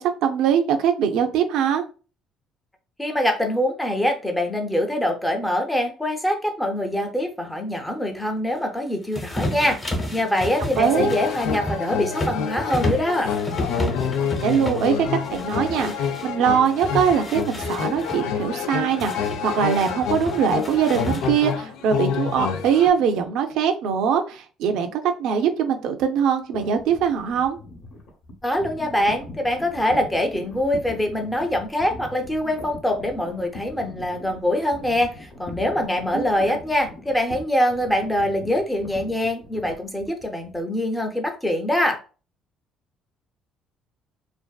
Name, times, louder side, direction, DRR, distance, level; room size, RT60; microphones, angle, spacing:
voice 1, 0.0-1.8 10.8-11.1 14.4-27.6 36.1-36.6, right 7 dB, 80° right, 5 dB, 0.4 m, -22 dB
voice 2, 3.0-13.3 28.4-42.0, left 1 dB, 5° left, 3 dB, 0.5 m, -24 dB
sound 1, 9.1-16.3 16.6-18.2 19.0-21.6, left 1 dB, 30° left, 0.9 m, -31 dB
sound 2, 10.9-22.9, left 7 dB, 85° left, 0.4 m, -28 dB
sound 3, 26.5-40.6, left 1 dB, 60° left, 0.8 m, -41 dB
2.5 x 2.4 x 2.3 m, 0.34 s
cardioid pair, 125°, 0 cm